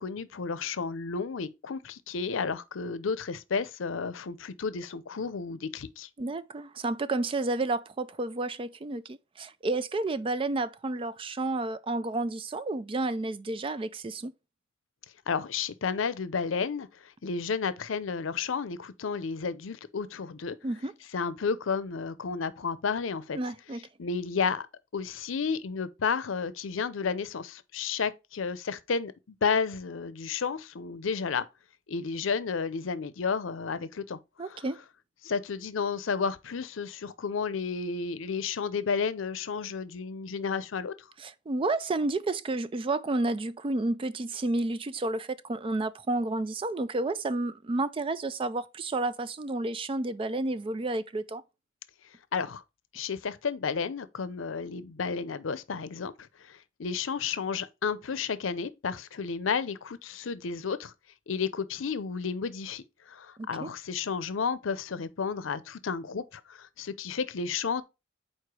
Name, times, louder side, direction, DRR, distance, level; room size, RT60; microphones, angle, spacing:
voice 1, 0.0-6.1 15.3-20.6 21.1-23.4 24.0-24.7 24.9-31.5 31.9-34.2 34.5-34.6 35.2-40.9 52.3-52.6 52.9-60.9 61.3-67.8, left 5 dB, 90° left, 0.6 m, -32 dB
voice 2, 6.2-14.3 20.6-20.9 23.3-23.9 34.4-34.8 41.2-51.4 63.4-63.7, right 2 dB, 30° right, 0.4 m, -31 dB
4.7 x 4.4 x 4.7 m
head